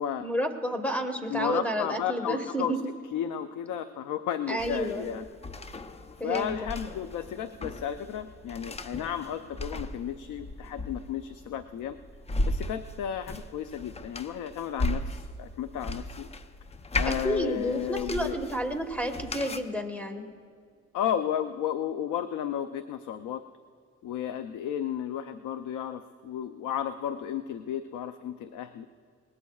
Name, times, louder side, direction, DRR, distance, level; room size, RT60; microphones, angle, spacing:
voice 1, 0.2-2.9 4.5-5.1 6.2-6.6 17.1-20.2, right 1 dB, 5° left, 6 dB, 1.4 m, -30 dB
voice 2, 1.3-2.7 3.1-5.2 6.2-12.0 12.5-16.3 17.0-18.4 20.9-23.4 24.0-28.9, left 9 dB, 85° left, 10 dB, 0.5 m, -33 dB
sound 1, 4.6-19.6, left 1 dB, 20° left, 0.6 m, -36 dB
21.0 x 19.5 x 2.4 m, 2.1 s
cardioid pair, 90°, 30 cm